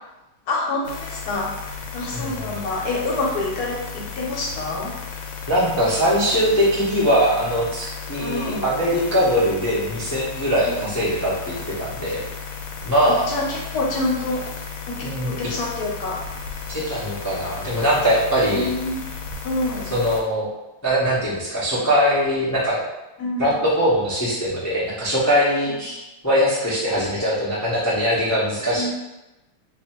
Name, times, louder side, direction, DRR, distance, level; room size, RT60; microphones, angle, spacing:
voice 1, 0.5-1.5 1.9-4.9 8.2-8.7 10.6-10.9 13.0-14.4 14.9-16.2 17.5-17.9 18.5-19.0 19.4-19.9 23.2-23.5 25.7-25.8 28.8-28.9, left 2 dB, 60° left, -2 dB, 1.2 m, -27 dB
sound 1, 0.8-20.2, left 5 dB, 80° left, 1.4 m, -34 dB
voice 2, 2.1-2.6 5.5-12.2 12.8-13.3 15.0-15.5 16.7-18.7 19.9-20.5 20.8-22.8 23.4-28.9, equal, 25° left, -9 dB, 0.3 m, -21 dB
2.9 x 2.7 x 4.3 m, 0.99 s
omnidirectional pair, 2.2 m